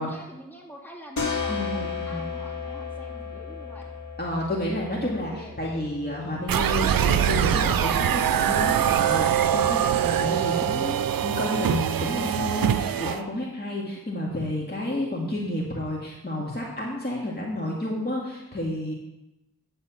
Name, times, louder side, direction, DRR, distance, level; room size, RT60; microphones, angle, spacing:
voice 1, 0.0-3.9 5.2-5.8, equal, 5° left, -2 dB, 2.8 m, -45 dB
sound 1, 1.2-6.6, left 5 dB, 55° left, 2.6 m, -34 dB
voice 2, 1.5-2.3 4.2-18.9, left 1 dB, 30° left, -4 dB, 2.1 m, -30 dB
sound 2, 6.5-13.2, right 9 dB, 75° right, 0.5 m, -23 dB
10.0 x 4.1 x 7.3 m, 0.94 s
cardioid pair, 40°, 34 cm